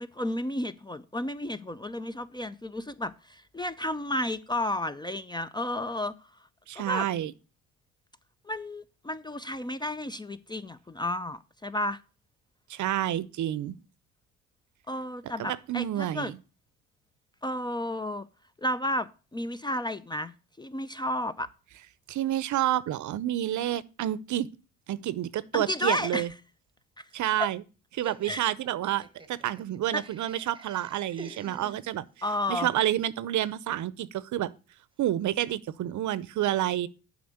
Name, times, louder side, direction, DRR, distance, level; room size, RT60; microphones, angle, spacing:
voice 1, 0.0-6.1 6.8-7.1 8.5-12.0 14.9-16.3 17.4-18.3 18.6-20.3 20.6-21.5 25.5-26.3 27.4-27.5 28.3-28.4 29.9-30.0 32.2-32.7, left 1 dB, 15° left, 0.4 m, -32 dB
voice 2, 6.7-7.3 12.7-13.8 15.5-16.4 22.1-24.5 24.9-26.3 27.1-27.6 27.9-32.1 32.5-34.5 35.0-36.9, right 12 dB, 55° right, 0.7 m, -29 dB
Laughter, 28.0-32.3, right 2 dB, 15° right, 1.0 m, -49 dB
7.9 x 5.1 x 6.4 m
supercardioid pair, 75°, 36 cm